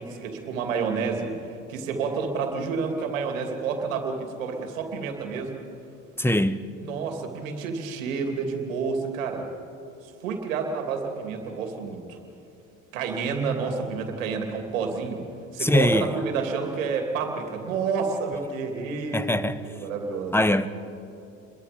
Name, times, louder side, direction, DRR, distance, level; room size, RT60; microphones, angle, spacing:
voice 1, 0.0-1.3 1.7-5.6 6.8-9.5 10.0-12.2 12.9-15.2 15.5-19.4 19.6-20.4, right 5 dB, 85° right, 2.8 m, -29 dB
voice 2, 6.2-6.6 15.6-16.1 19.1-19.6 20.3-20.7, left 1 dB, 5° left, 1.2 m, -22 dB
29.0 x 22.5 x 5.2 m
hypercardioid pair, 65°, 39 cm